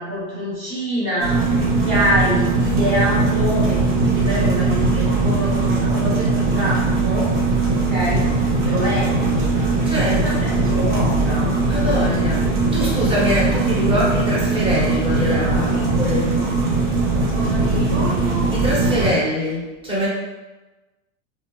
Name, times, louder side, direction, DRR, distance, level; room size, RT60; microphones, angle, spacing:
voice 1, 0.0-1.4 1.8-7.3 7.7-8.2 8.6-9.5 10.1-11.6 15.1-15.9 17.2-18.5, equal, 30° right, -8 dB, 1.2 m, -26 dB
sound 1, 1.2-19.1, right 3 dB, 60° right, 1.0 m, -20 dB
voice 2, 9.8-10.2 11.7-16.3 18.5-20.1, equal, 15° right, -7 dB, 1.0 m, -23 dB
2.5 x 2.0 x 3.1 m, 1.2 s
supercardioid pair, 115°, 38 cm